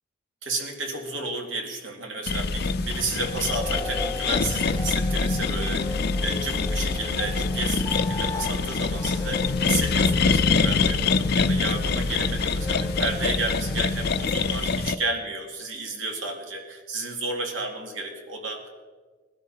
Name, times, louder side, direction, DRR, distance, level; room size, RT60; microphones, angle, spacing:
voice 1, 0.4-18.7, right 3 dB, 80° right, 2 dB, 2.4 m, -32 dB
sound 1, 2.3-14.9, left 4 dB, 55° left, 0.5 m, -25 dB
sound 2, 3.0-14.3, left 3 dB, 15° left, 0.8 m, -37 dB
20.0 x 12.5 x 4.2 m, 1.4 s
head